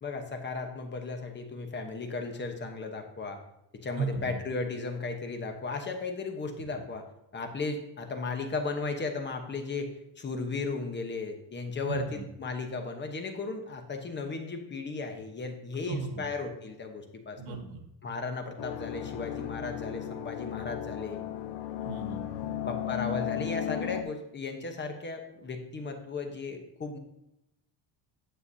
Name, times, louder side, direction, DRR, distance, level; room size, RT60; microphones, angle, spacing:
voice 1, 0.0-3.4 3.8-7.0 7.3-17.6 18.0-21.2 22.6-27.0, left 3 dB, 25° left, 5 dB, 0.9 m, -35 dB
voice 2, 3.9-4.3 11.8-12.2 15.9-16.3 17.4-17.9 21.8-22.5, right 4 dB, 85° right, 5 dB, 1.6 m, -35 dB
sound 1, 18.6-24.0, left 12 dB, 70° left, 0.8 m, -35 dB
9.9 x 7.9 x 2.7 m, 0.82 s
cardioid pair, 145°, 45 cm